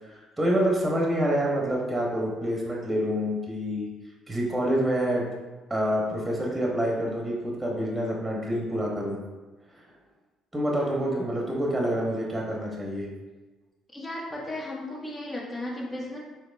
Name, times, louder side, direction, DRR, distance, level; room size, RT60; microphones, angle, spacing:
voice 1, 0.4-3.9 4.3-5.2 5.7-9.2 9.7-9.8 10.5-13.1, equal, 15° right, -2 dB, 1.0 m, -27 dB
voice 2, 13.9-16.2, left 1 dB, 30° left, -4 dB, 1.1 m, -35 dB
4.1 x 2.9 x 2.6 m, 1.2 s
hypercardioid pair, 60°, 0 cm